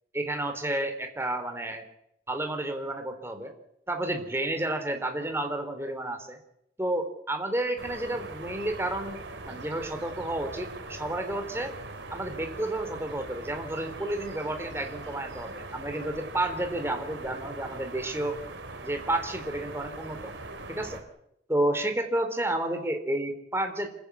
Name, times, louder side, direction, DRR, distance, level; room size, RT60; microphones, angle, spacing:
voice 1, 0.1-1.8 2.3-3.5 3.9-6.4 6.8-11.7 12.1-18.4 18.8-20.3 20.7-21.0 21.5-23.9, right 1 dB, 15° right, 6 dB, 3.3 m, -31 dB
sound 1, 7.8-21.0, right 2 dB, 85° right, 3.4 m, -41 dB
27.0 x 15.0 x 8.2 m, 0.78 s
head